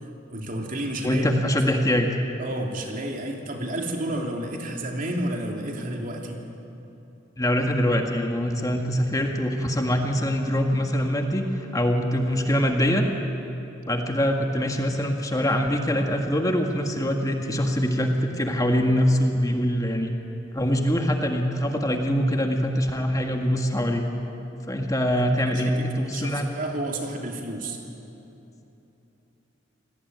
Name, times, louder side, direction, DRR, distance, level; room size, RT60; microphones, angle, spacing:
voice 1, 0.3-1.6 2.4-6.4 25.1-27.8, right 1 dB, 45° right, 2 dB, 3.0 m, -31 dB
voice 2, 1.0-2.1 7.4-13.1 13.9-20.1 20.5-24.1 24.7-26.5, equal, 20° left, 3 dB, 1.8 m, -24 dB
27.5 x 19.0 x 9.6 m, 3.0 s
head